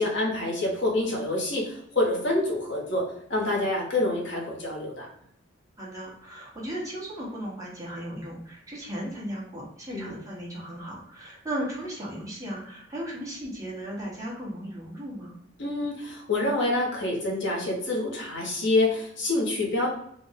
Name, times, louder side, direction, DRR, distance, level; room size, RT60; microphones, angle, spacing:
voice 1, 0.0-3.0 3.3-5.1 9.9-10.1 15.6-19.9, left 2 dB, 65° left, -2 dB, 1.2 m, -27 dB
voice 2, 5.8-15.3, right 1 dB, 15° right, -6 dB, 1.5 m, -36 dB
3.9 x 2.5 x 3.7 m, 0.70 s
head